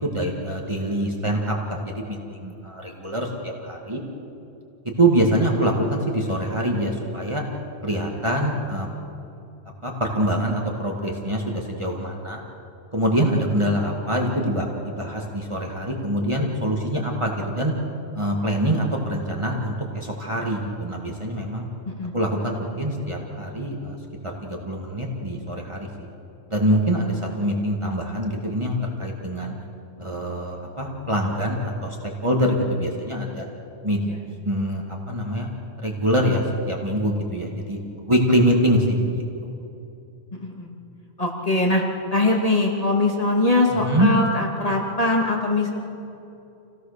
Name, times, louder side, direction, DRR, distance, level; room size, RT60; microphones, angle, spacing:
voice 1, 0.0-4.0 5.0-7.4 7.8-8.9 9.8-12.4 12.9-17.7 18.1-21.6 22.1-24.0 24.2-25.9 26.5-29.5 30.0-32.0 32.2-33.4 33.8-34.0 34.3-35.5 35.8-39.2 43.7-44.1, equal, 25° right, -1 dB, 2.1 m, -24 dB
voice 2, 41.2-41.8 42.1-45.7, left 2 dB, 35° left, 0 dB, 2.7 m, -22 dB
28.5 x 17.0 x 6.8 m, 2.7 s
omnidirectional pair, 1.1 m